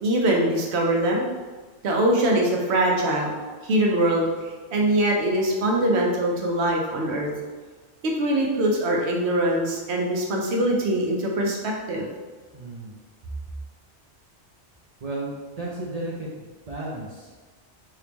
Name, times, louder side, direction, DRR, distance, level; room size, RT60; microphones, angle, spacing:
voice 1, 0.0-1.2 1.8-3.3 3.6-4.3 4.7-7.3 8.0-12.1, right 1 dB, 75° right, 0 dB, 0.9 m, -22 dB
voice 2, 12.5-12.9 15.0-16.3 16.7-17.3, right 2 dB, 50° right, -4 dB, 0.5 m, -33 dB
2.9 x 2.9 x 3.4 m, 1.4 s
omnidirectional pair, 1.1 m